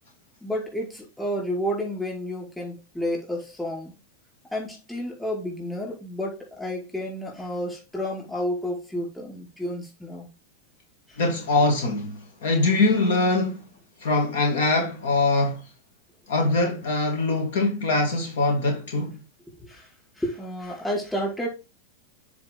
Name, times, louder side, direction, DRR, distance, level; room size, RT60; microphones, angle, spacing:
voice 1, 0.4-3.9 4.5-10.3 11.1-11.2 19.6-21.5, equal, 5° left, 5.1 m, -31 dB
voice 2, 11.2-13.7 14.0-15.6 16.3-19.2, left 2 dB, 75° left, 2.6 m, -23 dB
9.5 x 4.9 x 3.8 m
hypercardioid pair, 120°, 0 cm